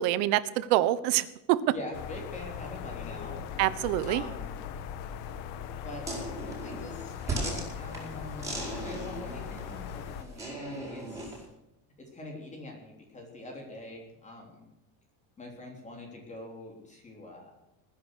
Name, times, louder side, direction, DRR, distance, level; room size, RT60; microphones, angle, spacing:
voice 1, 0.0-1.6 3.6-4.2, right 15 dB, 75° right, 16 dB, 1.2 m, -26 dB
voice 2, 1.7-3.4 4.0-4.5 5.8-11.3 12.0-14.6 15.4-17.5, left 1 dB, 15° left, 1 dB, 3.4 m, -44 dB
sound 1, 1.9-10.2, left 8 dB, 65° left, 1.6 m, -40 dB
sound 2, 6.0-11.4, right 2 dB, 10° right, 5.1 m, -38 dB
20.0 x 10.0 x 6.4 m, 0.92 s
cardioid pair, 170°, 41 cm